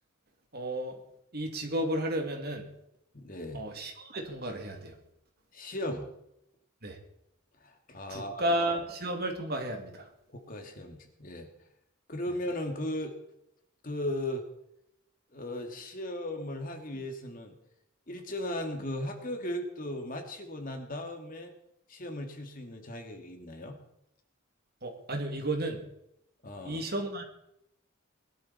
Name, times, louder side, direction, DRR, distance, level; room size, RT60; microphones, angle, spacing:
voice 1, 0.5-1.0 1.3-2.6 3.5-4.9 6.8-7.0 8.1-10.0 24.8-25.8 26.6-27.2, right 1 dB, 50° right, 3 dB, 2.5 m, -32 dB
voice 2, 3.1-3.7 5.5-6.1 7.6-8.8 10.3-11.5 12.1-13.2 13.8-14.4 15.3-17.6 18.1-21.5 21.9-23.8 26.4-26.8, left 1 dB, 40° left, 4 dB, 2.2 m, -37 dB
21.0 x 12.0 x 4.2 m, 0.79 s
head